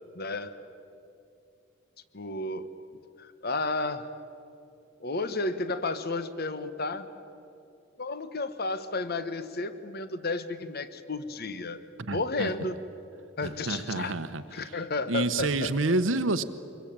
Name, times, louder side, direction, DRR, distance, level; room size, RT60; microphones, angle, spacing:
voice 1, 0.1-0.5 2.1-2.7 3.2-4.1 5.0-7.1 8.0-11.8 12.1-12.8 13.4-14.2 14.5-15.9, left 3 dB, 50° left, 12 dB, 1.2 m, -32 dB
voice 2, 12.1-12.5 13.4-14.4 15.1-16.4, right 2 dB, 70° right, 10 dB, 1.1 m, -28 dB
25.5 x 22.5 x 8.9 m, 2.7 s
head